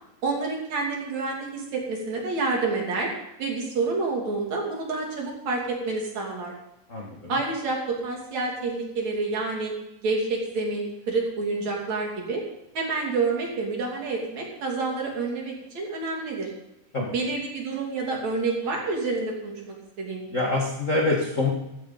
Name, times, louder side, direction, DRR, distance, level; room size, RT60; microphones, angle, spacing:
voice 1, 0.2-3.1 3.4-6.5 7.3-9.7 10.0-12.4 12.7-16.5 17.1-20.2, right 3 dB, 50° right, -1 dB, 3.8 m, -28 dB
voice 2, 6.9-7.4 16.9-17.1 20.3-21.5, left 2 dB, 50° left, -1 dB, 0.9 m, -25 dB
14.5 x 14.0 x 4.0 m, 0.87 s
omnidirectional pair, 4.3 m